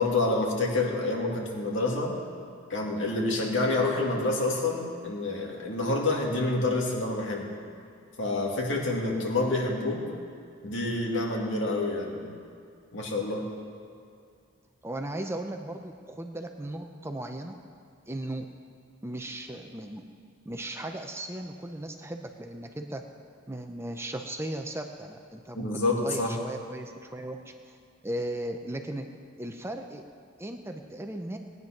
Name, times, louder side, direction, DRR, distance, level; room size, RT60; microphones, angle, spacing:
voice 1, 0.0-2.2 2.7-7.5 8.2-10.0 10.6-12.3 12.9-13.5 25.6-26.4, left 2 dB, 65° left, -1 dB, 2.4 m, -28 dB
voice 2, 14.8-17.5 18.1-18.5 19.0-20.0 20.4-23.0 23.5-27.8 28.0-29.1 29.4-30.0 30.4-31.4, right 1 dB, 15° right, 4 dB, 0.6 m, -37 dB
19.0 x 9.5 x 5.9 m, 2.3 s
head